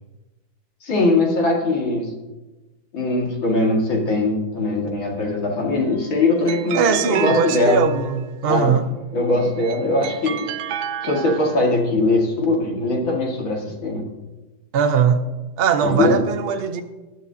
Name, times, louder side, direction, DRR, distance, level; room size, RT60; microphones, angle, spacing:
voice 1, 0.8-2.1 2.9-7.9 8.5-8.7 9.1-10.4 11.0-14.0 15.8-16.2, left 2 dB, 90° left, -1 dB, 2.9 m, -21 dB
sound 1, 5.8-8.4 9.4-11.8, right 10 dB, 80° right, 1.3 m, -32 dB
voice 2, 6.7-8.9 14.7-15.2 15.6-16.8, right 6 dB, 45° right, 6 dB, 0.8 m, -20 dB
20.0 x 10.5 x 2.8 m, 1.1 s
omnidirectional pair, 2.1 m